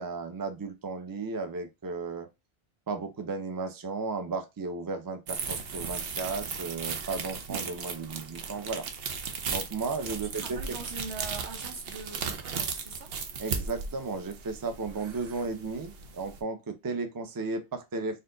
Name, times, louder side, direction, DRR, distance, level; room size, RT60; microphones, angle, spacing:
voice 1, 0.0-2.3 2.9-8.9 9.5-10.8 13.4-18.2, right 4 dB, 25° right, 0.5 m, -34 dB
sound 1, 5.3-16.4, right 5 dB, 65° right, 0.9 m, -36 dB
voice 2, 10.1-13.1, right 4 dB, 85° right, 1.3 m, -42 dB
4.3 x 2.5 x 3.8 m
omnidirectional pair, 1.1 m